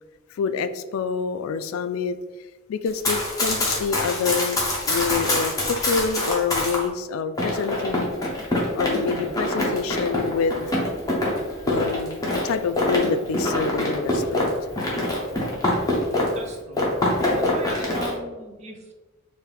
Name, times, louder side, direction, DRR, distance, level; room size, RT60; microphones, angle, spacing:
voice 1, 0.3-2.2 2.7-4.6 4.9-8.1 8.8-10.7 11.1-11.3 11.6-14.5, left 5 dB, 75° left, 12 dB, 0.3 m, -27 dB
Run, 2.9-6.8 7.4-16.5 16.7-18.1, left 1 dB, 15° left, 0.9 m, -25 dB
voice 2, 16.3-16.8 17.3-18.9, equal, 30° right, 2 dB, 0.6 m, -38 dB
4.6 x 2.7 x 3.3 m, 1.2 s
head